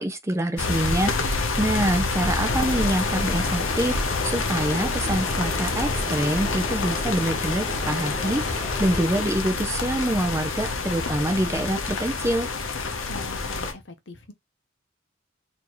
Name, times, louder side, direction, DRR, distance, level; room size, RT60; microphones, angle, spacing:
voice 1, 0.0-4.0 4.2-12.5, right 1 dB, 15° right, 0.5 m, -26 dB
sound 1, 0.6-13.7, left 3 dB, 85° left, 0.8 m, -27 dB
sound 2, 2.5-9.2, left 1 dB, 35° left, 1.1 m, -36 dB
voice 2, 13.0-14.3, left 2 dB, 60° left, 0.8 m, -41 dB
4.2 x 2.8 x 3.0 m
head